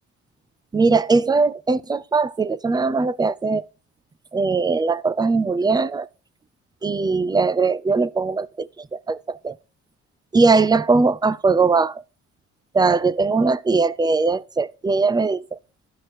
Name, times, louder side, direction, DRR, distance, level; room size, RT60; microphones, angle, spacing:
voice 1, 0.7-3.7 4.3-6.1 6.8-9.6 10.3-12.0 12.7-15.6, right 4 dB, 15° right, 0.4 m, -20 dB
13.0 x 4.7 x 2.9 m
cardioid pair, 90°, 30 cm